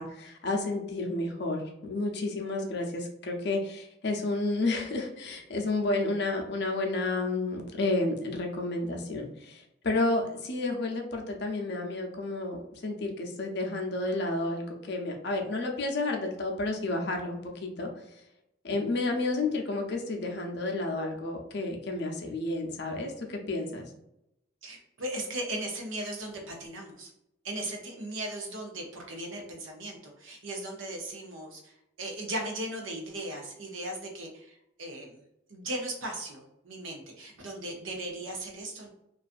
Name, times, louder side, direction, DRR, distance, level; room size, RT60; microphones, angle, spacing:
voice 1, 0.0-12.6 12.8-17.9 18.6-23.9, left 2 dB, 60° left, 2 dB, 0.5 m, -31 dB
voice 2, 24.6-27.1 27.4-35.2 35.5-38.9, right 1 dB, 90° right, 2 dB, 0.7 m, -37 dB
2.5 x 2.3 x 2.5 m, 0.82 s
head